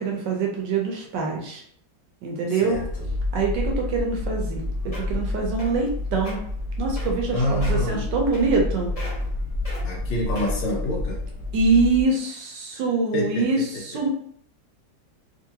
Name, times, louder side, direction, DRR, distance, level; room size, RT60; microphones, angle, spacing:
voice 1, 0.0-1.6 2.2-2.8 3.3-4.6 5.1-6.4 6.8-8.9 11.5-13.6 13.9-14.1, right 4 dB, 70° right, 0 dB, 1.4 m, -24 dB
voice 2, 2.5-3.1 7.3-8.1 9.8-11.2 12.7-12.8 13.1-14.1, left 1 dB, 70° left, -2 dB, 1.6 m, -28 dB
sound 1, 2.7-12.0, left 2 dB, 85° left, 0.4 m, -29 dB
sound 2, 4.6-4.7 4.9-5.2 5.6-5.9 6.2-6.3 7.0-7.3 7.6-7.9 8.3-8.7 9.0-9.3 9.6-9.8 10.3-10.7 11.3-11.4, left 1 dB, 35° left, 0.6 m, -38 dB
3.8 x 2.8 x 2.8 m, 0.64 s
omnidirectional pair, 2.1 m